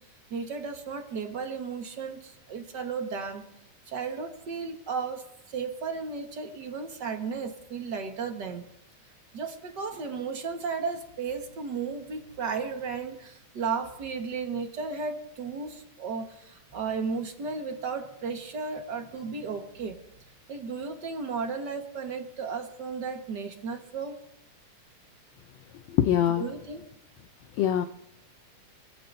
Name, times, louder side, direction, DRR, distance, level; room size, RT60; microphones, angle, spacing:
voice 1, 0.3-3.4 3.9-8.6 9.3-20.0 20.5-24.2 26.4-26.9, right 5 dB, 45° right, 4 dB, 1.5 m, -34 dB
voice 2, 25.9-26.5 27.6-27.9, left 11 dB, 80° left, 7 dB, 1.5 m, -23 dB
26.5 x 15.5 x 2.7 m, 0.82 s
omnidirectional pair, 3.7 m